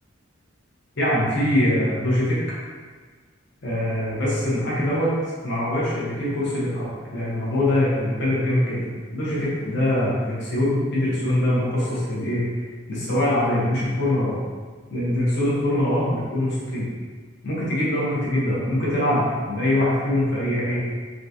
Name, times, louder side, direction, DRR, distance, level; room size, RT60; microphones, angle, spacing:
voice 1, 1.0-2.4 3.6-5.1 5.4-12.4 12.9-14.4 14.9-16.9 17.4-20.8, left 1 dB, 55° left, -8 dB, 1.0 m, -23 dB
3.8 x 2.4 x 2.7 m, 1.5 s
head